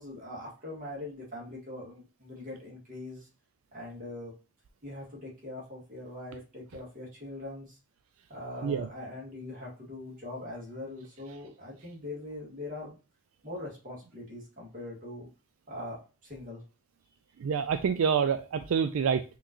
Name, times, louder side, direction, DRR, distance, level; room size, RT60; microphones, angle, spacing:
voice 1, 0.0-3.3 3.7-4.3 4.8-7.8 8.3-13.0 13.4-15.3 15.7-16.6, left 1 dB, 40° right, -3 dB, 1.9 m, -42 dB
voice 2, 17.4-19.2, right 6 dB, 70° right, 8 dB, 0.3 m, -27 dB
5.8 x 3.1 x 2.5 m, 0.32 s
head